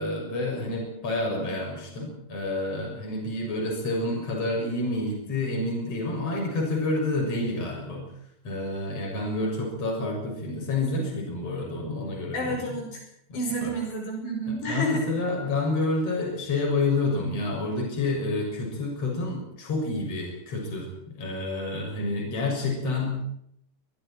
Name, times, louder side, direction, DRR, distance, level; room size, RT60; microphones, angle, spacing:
voice 1, 0.0-8.1 8.4-12.6 13.6-13.7 14.5-23.2, left 2 dB, 30° left, 0 dB, 7.5 m, -29 dB
voice 2, 12.3-13.0 13.3-15.1, right 1 dB, 65° left, 0 dB, 8.1 m, -30 dB
27.5 x 22.5 x 4.5 m, 0.72 s
omnidirectional pair, 5.5 m